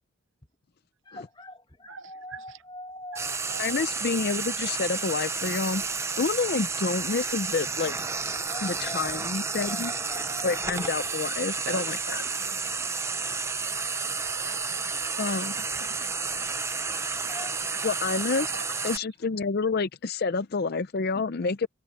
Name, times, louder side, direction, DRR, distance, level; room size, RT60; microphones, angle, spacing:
voice 1, 1.0-3.5 8.3-9.4 9.7-11.6 13.1-13.5 15.7-16.7 17.2-18.0 21.4-21.5, left 1 dB, 20° left, 1.9 m, -45 dB
voice 2, 1.9-2.4 3.5-3.8 11.6-11.8 12.1-13.3 16.7-16.8 18.5-18.8, right 5 dB, 65° right, 0.6 m, -42 dB
Frying (food), 3.2-19.0, right 4 dB, 15° right, 0.7 m, -31 dB
voice 3, 3.6-5.8 6.2-7.9 8.6-9.9 10.4-12.2 15.2-15.6 17.8-18.5 18.8-21.7, left 4 dB, 50° left, 0.5 m, -28 dB
head